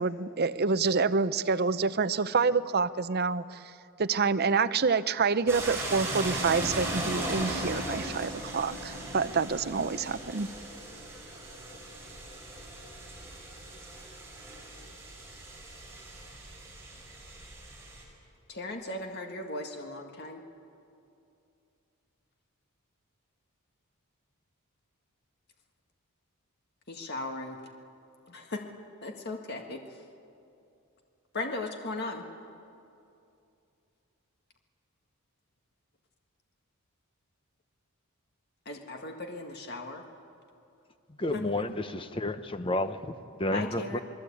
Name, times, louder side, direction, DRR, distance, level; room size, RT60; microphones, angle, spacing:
voice 1, 0.0-3.6 4.0-10.5, right 4 dB, 45° right, 13 dB, 0.6 m, -27 dB
sound 1, 5.5-18.0, right 1 dB, 10° right, 5.2 m, -38 dB
voice 2, 18.5-20.4 26.9-27.6 28.3-28.6 29.0-29.8 31.3-32.3 38.6-40.0 41.3-41.5 43.5-44.0, left 2 dB, 45° left, 4 dB, 1.8 m, -37 dB
voice 3, 41.2-43.1 43.4-44.0, left 2 dB, 25° left, 10 dB, 0.8 m, -31 dB
28.5 x 21.0 x 8.5 m, 2.7 s
head